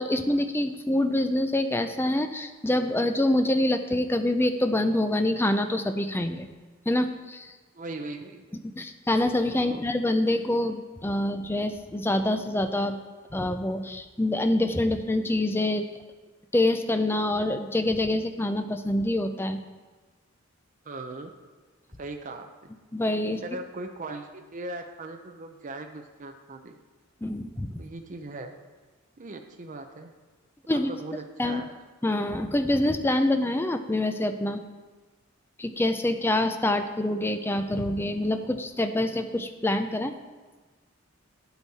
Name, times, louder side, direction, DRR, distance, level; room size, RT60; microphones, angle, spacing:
voice 1, 0.0-6.5 6.9-7.5 8.8-13.0 13.3-15.8 16.5-19.6 22.9-23.4 27.2-27.8 30.7-30.9 31.4-31.6 32.0-34.6 35.6-40.1, left 1 dB, 10° left, 8 dB, 0.5 m, -26 dB
voice 2, 7.7-8.5 9.6-9.8 20.8-21.3 22.0-22.7 23.4-26.8 27.8-28.5 29.2-30.1 30.9-31.7, right 2 dB, 40° right, 4 dB, 0.6 m, -39 dB
10.0 x 8.1 x 4.2 m, 1.3 s
head